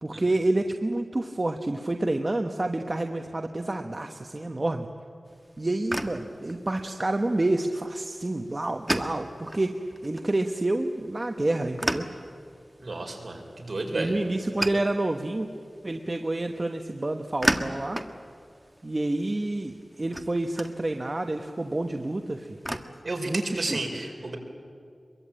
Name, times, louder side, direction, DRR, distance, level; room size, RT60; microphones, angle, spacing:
voice 1, 0.0-4.9 5.6-12.1 13.9-15.5 15.8-18.0 18.8-22.5 23.2-23.8, right 2 dB, 35° right, 5 dB, 1.2 m, -28 dB
sound 1, 5.3-22.8, equal, 10° right, 1.5 m, -36 dB
voice 2, 12.8-14.1 23.0-24.4, right 2 dB, 60° right, 2 dB, 4.7 m, -32 dB
24.5 x 22.5 x 9.0 m, 2.3 s
wide cardioid pair, 75°, 0 cm